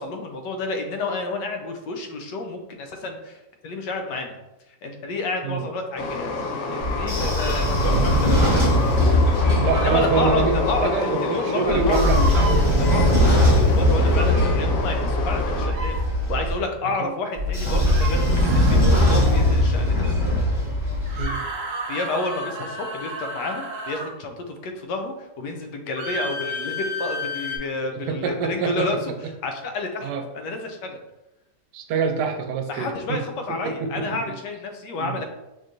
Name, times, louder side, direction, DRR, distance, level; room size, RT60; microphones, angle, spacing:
voice 1, 0.0-4.4 4.8-6.3 6.9-8.6 9.8-12.0 12.9-13.1 13.5-16.0 16.3-20.1 21.9-29.0 29.4-31.0 32.7-35.2, left 3 dB, 90° left, 4 dB, 1.2 m, -30 dB
Train, 6.0-15.7, left 3 dB, 65° left, 0.9 m, -28 dB
Train / Sliding door, 6.8-10.8 11.7-16.5 17.4-21.2, left 1 dB, 20° left, 1.0 m, -20 dB
voice 2, 9.5-13.1 21.2-21.4 27.9-28.9 30.0-30.2 31.7-33.2 33.5-34.3 35.0-35.2, right 5 dB, 80° right, 5 dB, 1.1 m, -26 dB
sound 1, 9.7-10.1 11.9-12.6 14.0-14.3 15.6-16.0 17.8-19.7 21.0-24.1 26.0-27.6, right 1 dB, 55° right, 1.0 m, -32 dB
4.3 x 3.0 x 2.6 m, 0.96 s
omnidirectional pair, 1.8 m